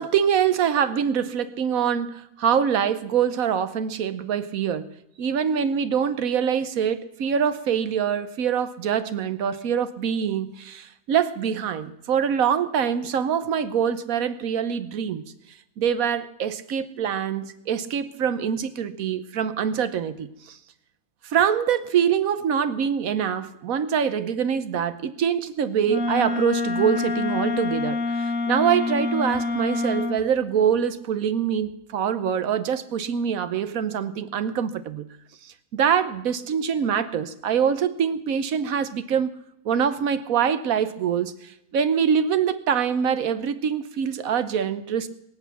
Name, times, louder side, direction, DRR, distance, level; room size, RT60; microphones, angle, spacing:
voice 1, 0.0-15.2 15.8-20.6 21.2-35.1 35.4-39.3 39.6-45.1, right 8 dB, 75° right, 1.3 m, -24 dB
Wind instrument woodwind instrument, 25.9-30.2, left 3 dB, 65° left, 1.3 m, -26 dB
22.5 x 8.3 x 5.8 m
omnidirectional pair, 1.5 m